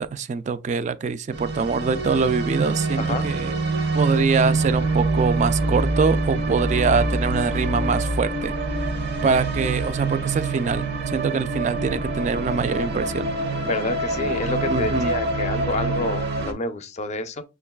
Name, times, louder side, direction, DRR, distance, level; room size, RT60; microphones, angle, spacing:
voice 1, 0.0-3.5 3.9-8.5 9.2-13.3 14.7-15.2, right 5 dB, 40° right, 0.3 m, -24 dB
sound 1, 1.3-16.5, right 2 dB, 60° right, 0.7 m, -25 dB
voice 2, 13.6-17.4, left 3 dB, 40° left, 0.4 m, -29 dB
6.3 x 2.3 x 2.2 m
head